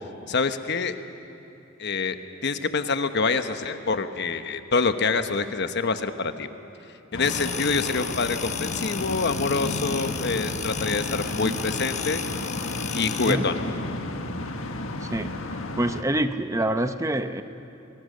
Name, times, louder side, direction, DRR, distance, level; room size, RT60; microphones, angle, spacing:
voice 1, 0.3-0.9 1.8-2.2 2.4-6.5 7.1-12.2 12.9-13.5, left 4 dB, 55° left, 9 dB, 1.1 m, -26 dB
sound 1, 7.1-16.0, left 2 dB, 80° left, 1.5 m, -32 dB
sound 2, 7.2-13.4, left 8 dB, 35° left, 1.1 m, -34 dB
voice 2, 15.8-17.4, right 1 dB, 15° right, 9 dB, 0.8 m, -26 dB
30.0 x 21.0 x 6.7 m, 2.9 s
head